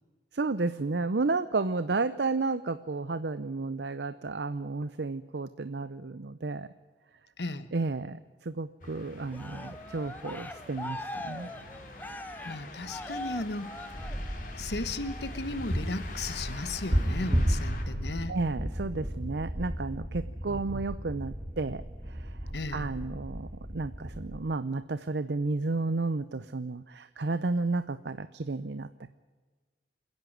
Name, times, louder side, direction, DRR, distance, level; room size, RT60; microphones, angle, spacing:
voice 1, 0.3-6.7 7.7-11.5 18.3-29.1, right 3 dB, 75° right, 13 dB, 0.7 m, -32 dB
voice 2, 7.4-7.7 12.4-13.7 14.6-18.3 20.5-20.7 22.5-22.8, left 2 dB, 75° left, 12 dB, 1.2 m, -35 dB
sound 1, 8.8-17.8, left 2 dB, 50° left, 2.9 m, -46 dB
Cheering, 9.3-14.6 15.0-15.4, left 1 dB, 10° left, 1.0 m, -41 dB
sound 2, 13.9-24.4, equal, 35° right, 2.1 m, -34 dB
28.0 x 10.5 x 9.2 m, 1.4 s
head